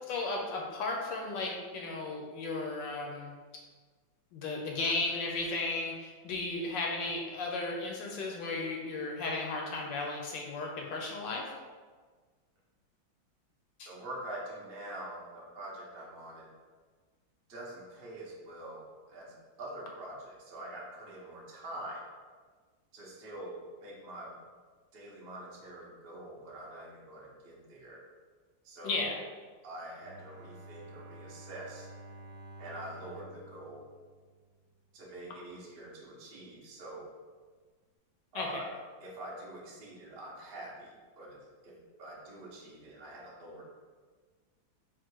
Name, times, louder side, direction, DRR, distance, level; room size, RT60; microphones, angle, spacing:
voice 1, 0.1-3.3 4.3-11.4 13.8-13.9 28.8-29.2 38.3-38.6, left 3 dB, 75° left, 0 dB, 1.2 m, -35 dB
voice 2, 13.9-16.5 17.5-18.8 19.1-22.0 22.9-24.3 24.9-28.0 28.6-29.1 29.6-31.9 32.6-33.8 34.9-37.1 38.3-38.7 39.0-43.6, right 1 dB, 55° right, -4 dB, 0.6 m, -45 dB
Bowed string instrument, 30.0-35.0, right 2 dB, 85° right, 1.4 m, -51 dB
3.6 x 2.5 x 4.5 m, 1.5 s
omnidirectional pair, 2.2 m